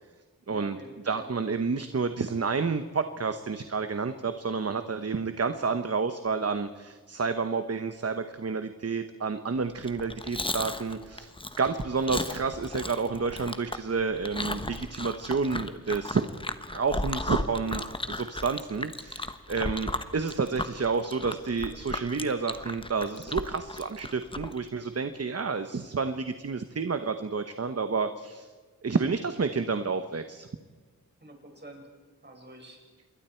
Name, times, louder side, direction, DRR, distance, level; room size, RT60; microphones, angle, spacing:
voice 1, 0.4-1.3 31.2-31.9 32.2-32.8, right 1 dB, 30° right, 1 dB, 5.8 m, -47 dB
voice 2, 1.0-16.2 16.7-17.8 18.1-28.5 28.8-30.5, right 4 dB, 45° right, 9 dB, 1.0 m, -30 dB
Chewing mastication, 9.8-24.6, left 1 dB, 15° left, 1.1 m, -35 dB
27.0 x 21.5 x 4.5 m, 1.4 s
wide cardioid pair, 85°, 34 cm